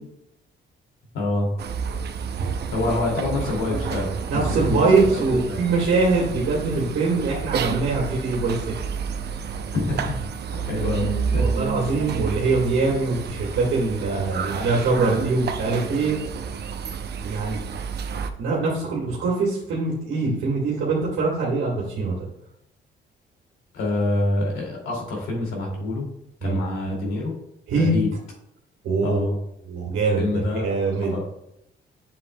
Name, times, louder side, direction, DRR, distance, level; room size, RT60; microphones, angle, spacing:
voice 1, 1.1-1.5 2.7-5.6 9.7-10.2 10.5-11.5 11.8-11.9 23.7-26.1 26.4-27.3 27.7-28.1 29.0-29.4 30.2-31.2, left 2 dB, 85° left, -1 dB, 2.7 m, -26 dB
sound 1, 1.6-18.3, right 6 dB, 55° right, 0.7 m, -30 dB
voice 2, 4.3-8.6 11.4-16.2 17.2-17.6 18.4-22.1 26.4-26.6 27.7-27.9 28.8-29.3 29.7-31.1, right 3 dB, 85° right, -3 dB, 1.8 m, -23 dB
7.8 x 7.0 x 2.3 m, 0.78 s
cardioid pair, 90°, 20 cm